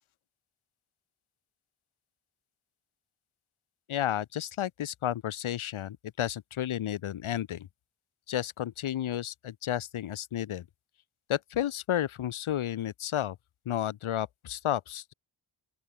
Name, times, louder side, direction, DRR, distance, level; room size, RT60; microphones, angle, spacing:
voice 1, 3.9-7.7 8.3-10.6 11.3-13.4 13.7-15.1, left 11 dB, 85° left, 1.0 m, -32 dB
open air
wide cardioid pair, 95°, 48 cm